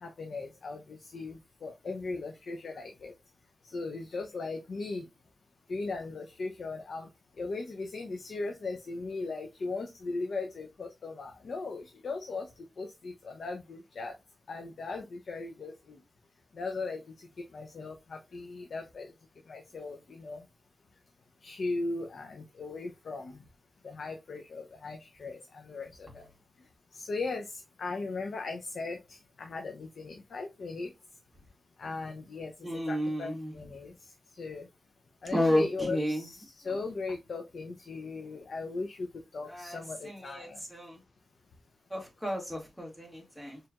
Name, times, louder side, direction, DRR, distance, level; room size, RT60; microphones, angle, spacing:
voice 1, 0.0-3.1 3.6-5.0 5.7-7.1 7.4-12.5 12.8-14.2 14.5-16.0 16.5-19.1 19.5-20.4 21.4-23.4 23.8-26.2 26.9-30.9 31.8-32.5 32.9-33.9 34.4-34.7 35.2-40.6, left 3 dB, 85° left, 0.6 m, -38 dB
voice 2, 32.6-33.5 35.3-36.3 36.7-36.8 39.5-41.0 41.9-43.6, left 1 dB, 5° left, 1.9 m, -32 dB
4.5 x 3.3 x 2.4 m
wide cardioid pair, 115°, 0 cm